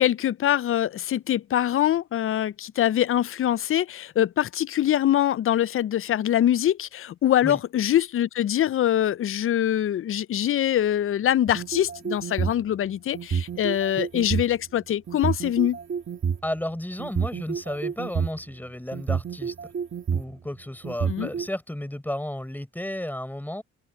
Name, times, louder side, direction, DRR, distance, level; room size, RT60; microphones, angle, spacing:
voice 1, 0.0-15.8 21.1-21.3, left 11 dB, 45° left, 0.5 m, -24 dB
sound 1, 11.5-12.6 13.1-14.4 15.1-16.4 17.0-18.4 18.9-20.3 20.8-21.5, right 6 dB, 40° right, 1.5 m, -28 dB
voice 2, 16.4-19.7 20.1-23.6, left 1 dB, 5° left, 5.3 m, -33 dB
open air
cardioid pair, 90°, 30 cm